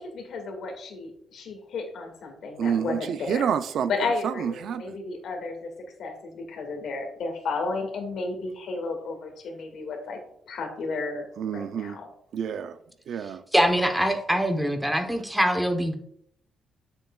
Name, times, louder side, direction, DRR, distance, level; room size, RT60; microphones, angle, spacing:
voice 1, 0.0-3.5 3.9-5.7 6.0-10.2 10.5-11.3 11.5-12.1, left 3 dB, 70° left, 3 dB, 2.0 m, -33 dB
voice 2, 2.6-3.0 3.3-3.9 4.4-4.8 11.4-12.0 12.3-12.7 13.1-13.4, right 8 dB, 65° right, 11 dB, 0.5 m, -28 dB
voice 3, 13.5-15.9, equal, 5° right, 5 dB, 1.0 m, -23 dB
9.3 x 7.7 x 2.4 m, 0.70 s
cardioid pair, 130°, 0 cm